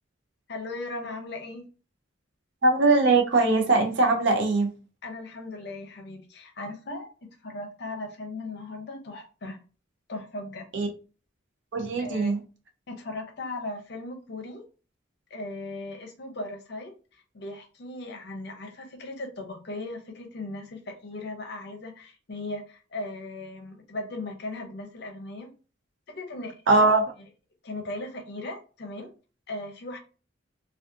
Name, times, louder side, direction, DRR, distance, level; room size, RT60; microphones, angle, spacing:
voice 1, 0.5-1.7 5.0-7.1 7.4-9.6 10.1-10.7 12.0-12.3 12.9-14.6 15.3-25.5 26.1-26.8 27.6-29.1 29.5-30.0, left 2 dB, 55° left, 0.6 m, -37 dB
voice 2, 2.6-4.7 10.7-10.9 11.7-12.4 26.7-27.0, right 3 dB, 70° right, 0.5 m, -21 dB
2.4 x 2.3 x 2.6 m
head